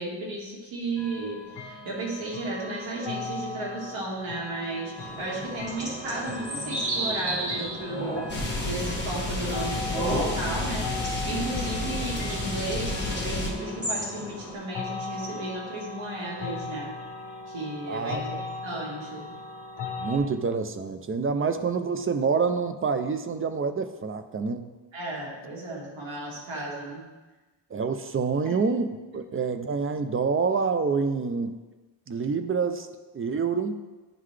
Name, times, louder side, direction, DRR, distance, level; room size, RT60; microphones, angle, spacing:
voice 1, 0.0-16.9 17.5-18.3 18.6-19.3 24.9-27.0 28.4-28.6, right 2 dB, 90° right, -4 dB, 1.7 m, -34 dB
sound 1, 1.0-20.2, left 4 dB, 65° left, 1.1 m, -39 dB
sound 2, 5.0-14.5, right 1 dB, 15° right, 1.9 m, -34 dB
sound 3, 8.3-13.5, left 2 dB, 25° left, 1.3 m, -31 dB
voice 2, 17.9-18.4 20.0-24.7 27.7-31.6 32.1-32.9 33.1-33.8, right 5 dB, 30° right, 9 dB, 0.4 m, -27 dB
10.5 x 3.9 x 3.2 m, 1.2 s
wide cardioid pair, 120°, 45 cm